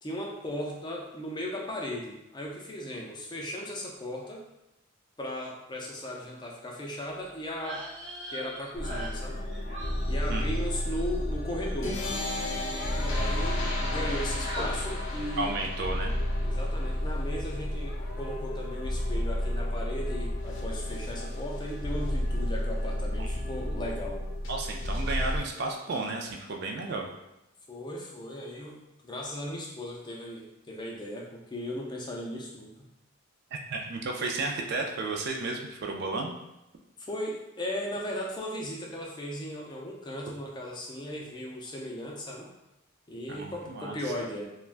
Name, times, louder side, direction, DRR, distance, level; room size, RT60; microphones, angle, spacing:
voice 1, 0.0-4.4 5.2-7.9 8.3-9.4 10.1-12.0 12.7-15.5 16.4-24.2 27.7-32.9 37.0-42.5 43.1-44.4, left 1 dB, 20° left, -1 dB, 0.4 m, -37 dB
sound 1, 7.5-13.1 13.4-14.1 14.4-14.7, right 1 dB, 20° right, 0.8 m, -43 dB
sound 2, 8.7-25.4, left 1 dB, 80° left, 0.6 m, -31 dB
voice 2, 15.4-16.2 23.2-23.6 24.5-27.1 33.5-36.4 43.3-44.0, right 3 dB, 55° right, 2 dB, 0.4 m, -33 dB
3.3 x 2.1 x 2.4 m, 0.90 s
head